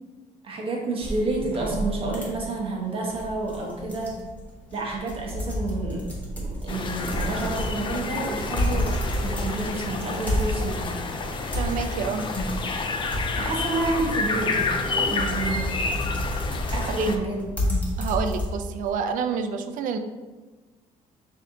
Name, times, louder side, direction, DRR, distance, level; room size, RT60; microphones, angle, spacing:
voice 1, 0.4-4.1 4.7-6.1 6.3-11.0 13.4-14.6 14.9-15.7 16.7-17.4, right 2 dB, 40° right, -1 dB, 1.0 m, -29 dB
sound 1, 1.0-18.9, left 1 dB, 10° left, 1.1 m, -31 dB
sound 2, 6.7-17.2, left 4 dB, 35° left, 0.4 m, -29 dB
voice 2, 11.6-12.2 17.0-17.1 18.0-20.0, right 6 dB, 70° right, 8 dB, 0.4 m, -28 dB
4.2 x 2.7 x 3.7 m, 1.3 s
cardioid pair, 120°, 14 cm